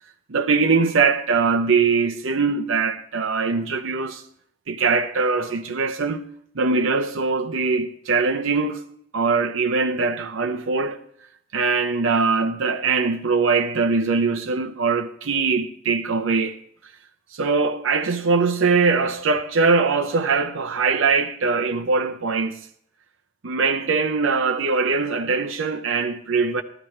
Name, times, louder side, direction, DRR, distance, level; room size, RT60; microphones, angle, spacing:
voice 1, 0.3-4.2 4.7-6.2 6.5-8.8 9.1-11.0 11.5-16.6 17.3-22.6 23.4-26.6, right 4 dB, 85° right, 0.7 m, -22 dB
14.5 x 12.0 x 3.2 m
head